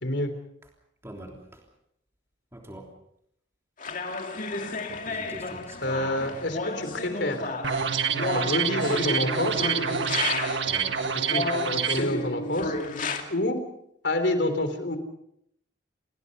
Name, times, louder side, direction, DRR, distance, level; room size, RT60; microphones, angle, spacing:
voice 1, 0.0-0.3 5.8-7.5 8.3-9.7 11.1-12.8 13.3-13.6 14.0-15.0, left 1 dB, 60° left, 9 dB, 3.6 m, -28 dB
voice 2, 1.0-1.4 2.5-2.8 4.9-6.0 10.6-11.1, right 1 dB, 15° right, 1 dB, 3.3 m, -43 dB
sound 1, 3.8-10.8 11.3-13.2, left 3 dB, 40° left, 2.6 m, -32 dB
sound 2, 7.6-12.0, right 6 dB, 65° right, 1.7 m, -27 dB
29.5 x 20.5 x 5.4 m, 0.74 s
head